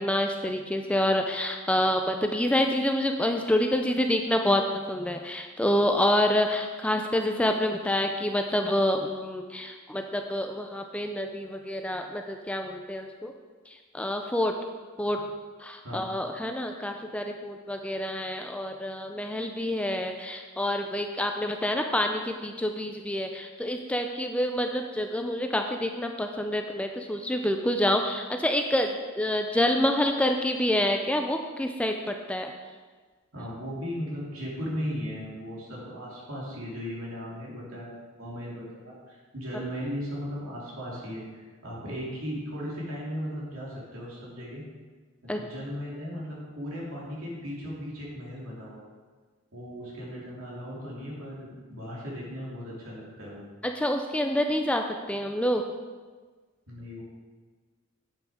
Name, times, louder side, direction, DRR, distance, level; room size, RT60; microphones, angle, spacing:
voice 1, 0.0-4.6 4.9-13.3 13.7-14.5 15.0-15.2 15.6-32.5 45.3-45.4 53.6-55.6, left 1 dB, 5° left, 4 dB, 0.4 m, -27 dB
voice 2, 33.3-44.6 45.2-48.9 49.5-53.4 56.7-57.0, equal, 70° right, -5 dB, 3.0 m, -37 dB
8.5 x 6.4 x 5.0 m, 1.4 s
head